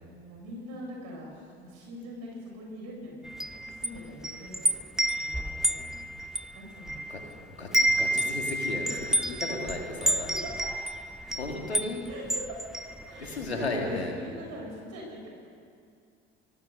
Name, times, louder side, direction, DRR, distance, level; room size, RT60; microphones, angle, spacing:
voice 1, 0.0-4.7 5.2-5.6 5.9-6.0 6.5-7.3 8.8-9.4 10.0-10.7 12.1-12.6 13.1-15.3, equal, 55° right, -1 dB, 6.9 m, -42 dB
Wind chime, 3.2-7.3 7.6-13.5, right 1 dB, ahead, 0.8 m, -30 dB
voice 2, 5.4-6.2 7.1-10.3 11.3-12.1 13.2-14.2, left 2 dB, 90° left, 2 dB, 2.5 m, -35 dB
24.0 x 16.5 x 6.8 m, 2.3 s
figure-of-eight pair, 60°, 31 cm